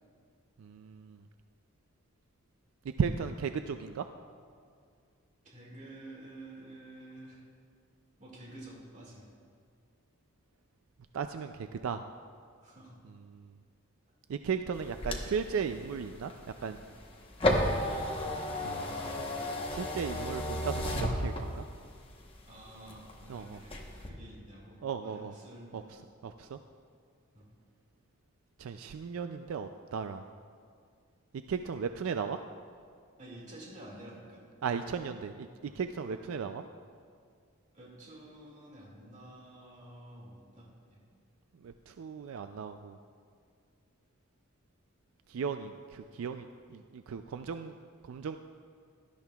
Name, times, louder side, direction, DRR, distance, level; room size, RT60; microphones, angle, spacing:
voice 1, 0.6-1.2 3.0-4.0 11.1-12.0 14.3-16.3 16.6-16.8 18.6-18.8 19.7-21.6 23.3-23.6 24.8-25.3 25.7-25.8 26.2-26.6 28.6-30.2 31.5-32.4 34.6-35.5 35.8-36.6 41.6-43.0 45.3-46.5 46.7-47.8 48.1-48.4, right 6 dB, 75° right, 8 dB, 0.4 m, -35 dB
voice 2, 5.4-7.4 8.2-9.3 12.6-13.0 18.8-19.2 22.5-26.0 27.3-27.5 33.2-34.4 35.6-35.8 36.2-36.4 37.7-41.0, right 1 dB, 35° right, -4 dB, 2.0 m, -50 dB
sound 1, 14.7-21.8 22.3-23.3 23.6-24.1, left 1 dB, 25° left, 1.0 m, -33 dB
17.0 x 12.5 x 2.3 m, 2.2 s
head